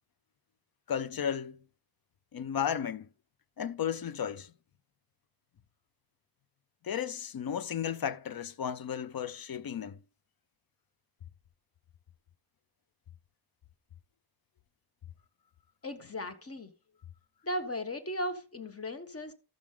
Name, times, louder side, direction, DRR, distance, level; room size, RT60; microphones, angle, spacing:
voice 1, 0.9-1.6 2.3-3.1 3.6-4.5 6.8-10.0, left 8 dB, 60° left, 0.6 m, -34 dB
voice 2, 15.8-16.7 17.4-19.3, left 1 dB, 35° left, 1.3 m, -36 dB
13.5 x 6.1 x 3.7 m
wide cardioid pair, 75°, 40 cm